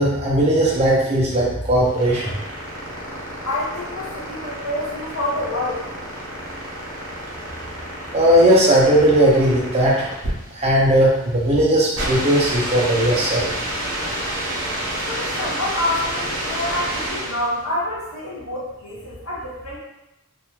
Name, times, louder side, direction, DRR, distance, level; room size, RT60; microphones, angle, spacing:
voice 1, 0.0-2.4 8.1-10.1 10.5-13.5, right 1 dB, 30° right, -5 dB, 0.6 m, -17 dB
sound 1, 1.6-17.6, right 1 dB, 65° right, 0.9 m, -29 dB
voice 2, 3.4-5.8 15.0-19.8, left 1 dB, 70° left, -7 dB, 1.1 m, -27 dB
2.6 x 2.3 x 3.0 m, 0.93 s
head